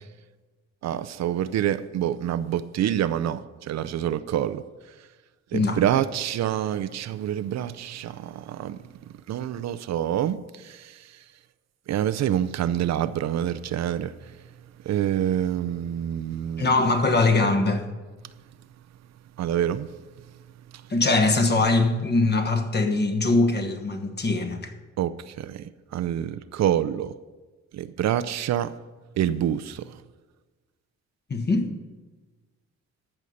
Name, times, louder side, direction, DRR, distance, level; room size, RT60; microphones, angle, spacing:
voice 1, 0.8-4.6 5.5-11.1 11.9-14.1 14.9-16.7 19.4-19.9 20.7-20.8 25.0-27.1 27.7-28.7 29.2-29.9, right 10 dB, 60° right, 14 dB, 0.5 m, -27 dB
voice 2, 16.6-17.9 20.9-24.7 31.3-31.7, left 3 dB, 35° left, 7 dB, 1.3 m, -22 dB
13.5 x 5.5 x 6.5 m, 1.3 s
cardioid pair, 90°, 30 cm